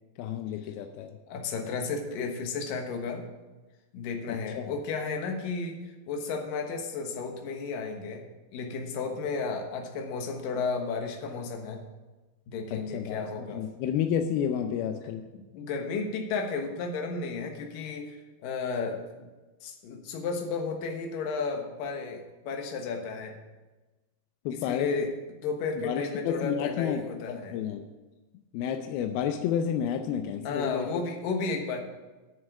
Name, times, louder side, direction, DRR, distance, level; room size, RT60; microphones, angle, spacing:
voice 1, 0.2-1.2 4.3-4.8 12.7-15.2 24.5-25.0 25.8-27.8 28.5-31.0, left 8 dB, 85° left, 6 dB, 2.6 m, -31 dB
voice 2, 1.3-3.3 3.9-5.8 6.1-8.2 8.5-11.8 12.5-13.6 15.3-19.3 19.6-23.3 24.5-27.6 30.4-31.8, left 4 dB, 70° left, 3 dB, 2.9 m, -33 dB
11.0 x 6.5 x 8.3 m, 1.2 s
omnidirectional pair, 4.3 m